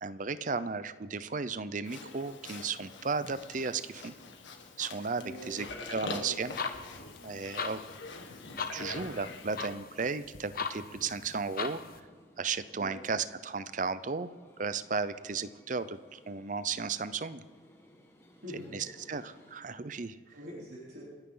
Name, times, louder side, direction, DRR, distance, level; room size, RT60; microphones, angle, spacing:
voice 1, 0.0-4.1 4.8-6.6 7.2-7.8 8.6-11.8 12.4-14.3 14.6-17.4 18.5-20.2, right 4 dB, 40° right, 14 dB, 0.6 m, -35 dB
Livestock farm animals working animals, 1.8-9.7, left 3 dB, 80° left, 1.8 m, -44 dB
voice 2, 5.1-6.3 12.7-13.0 18.4-18.9 20.0-21.0, equal, 60° right, -6 dB, 3.4 m, -45 dB
sound 1, 6.4-12.0, left 5 dB, 50° left, 1.0 m, -40 dB
sound 2, 11.0-19.5, equal, 15° left, 1.7 m, -61 dB
29.0 x 10.0 x 3.9 m, 1.4 s
head